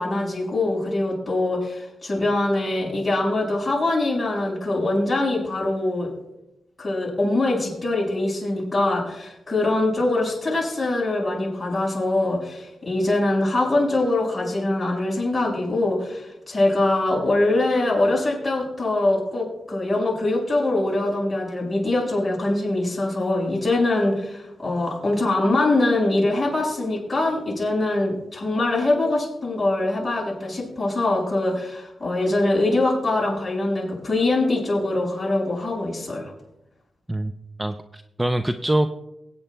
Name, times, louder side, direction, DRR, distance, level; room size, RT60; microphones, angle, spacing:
voice 1, 0.0-6.1 6.8-36.3, left 2 dB, 15° left, -4 dB, 5.0 m, -23 dB
voice 2, 37.6-38.9, right 1 dB, 10° right, 8 dB, 0.4 m, -24 dB
23.5 x 8.8 x 2.2 m, 0.91 s
wide cardioid pair, 140°, 0 cm